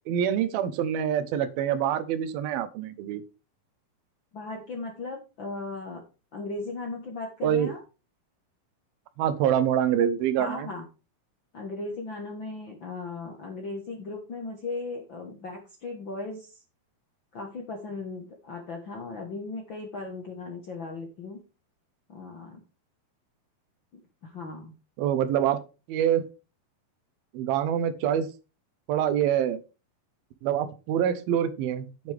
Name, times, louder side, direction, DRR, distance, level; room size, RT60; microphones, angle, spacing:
voice 1, 0.1-3.2 7.4-7.7 9.2-10.7 25.0-25.6 25.9-26.2 27.3-28.3 28.9-29.6 30.4-32.1, right 9 dB, 85° right, 13 dB, 2.7 m, -25 dB
voice 2, 4.3-6.0 6.3-7.8 10.4-10.8 11.5-16.5 17.3-21.4 22.1-22.6 24.2-24.7, left 3 dB, 60° left, 1 dB, 1.3 m, -37 dB
9.6 x 8.9 x 3.4 m, 0.32 s
omnidirectional pair, 4.2 m